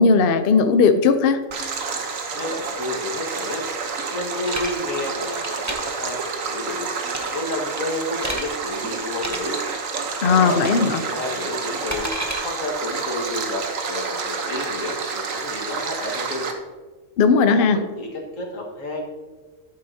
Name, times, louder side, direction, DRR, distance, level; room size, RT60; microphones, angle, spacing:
voice 1, 0.0-1.4 10.2-11.0 17.2-17.8, left 5 dB, 55° left, 9 dB, 0.7 m, -17 dB
Stream, 1.5-16.5, right 5 dB, 85° right, 1.4 m, -29 dB
voice 2, 2.3-3.6 4.1-6.9 7.3-9.6 10.2-12.1 12.4-16.5 17.3-19.1, left 2 dB, 85° left, -1 dB, 2.0 m, -30 dB
sound 1, 4.0-4.7 5.3-5.8 7.1-7.4 7.8-8.4 9.1-9.4 10.6-10.9 11.2-12.4, right 1 dB, 15° right, 0.8 m, -31 dB
11.5 x 8.9 x 2.7 m, 1.3 s
omnidirectional pair, 1.3 m